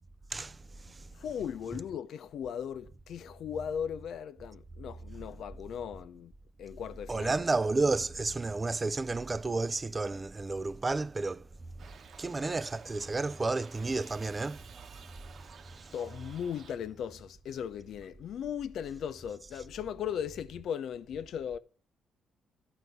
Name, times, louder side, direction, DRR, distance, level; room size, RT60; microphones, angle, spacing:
voice 1, 1.2-6.3 6.6-7.4 15.9-21.6, left 8 dB, 70° left, 0.7 m, -37 dB
voice 2, 7.1-11.4 12.2-14.6 15.7-15.9, right 3 dB, 25° right, 0.5 m, -31 dB
Shout / Livestock farm animals working animals, 11.8-16.8, right 6 dB, 60° right, 1.1 m, -54 dB
12.0 x 4.1 x 7.9 m
cardioid pair, 90°, 0 cm